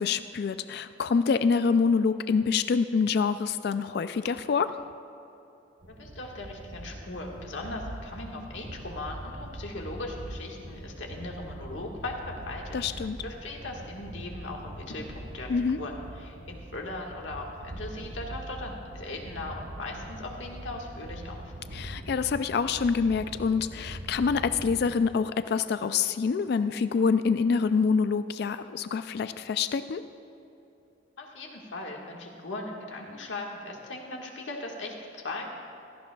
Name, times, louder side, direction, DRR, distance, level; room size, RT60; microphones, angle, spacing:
voice 1, 0.0-4.8 12.7-13.2 15.5-15.8 21.7-30.0, left 5 dB, 60° left, 12 dB, 0.3 m, -26 dB
sound 1, 5.8-24.8, right 1 dB, 70° right, 1.1 m, -42 dB
voice 2, 5.9-15.5 15.8-21.5 31.2-35.5, left 2 dB, 80° left, 0 dB, 1.6 m, -39 dB
16.5 x 14.5 x 2.3 m, 2.8 s
head